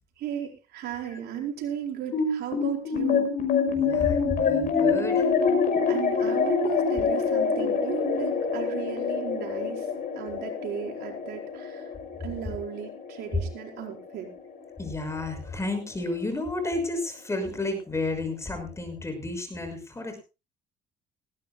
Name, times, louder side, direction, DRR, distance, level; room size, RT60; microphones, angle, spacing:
voice 1, 0.2-3.3 5.9-9.9 10.1-11.9 12.2-14.3, right 9 dB, 75° right, 1 dB, 4.9 m, -36 dB
sound 1, 2.1-14.7, left 5 dB, 55° left, 5.9 m, -26 dB
voice 2, 3.7-5.3 14.8-20.2, left 2 dB, 15° left, 7 dB, 6.0 m, -32 dB
19.5 x 17.0 x 2.2 m, 0.30 s
cardioid pair, 110°, 17 cm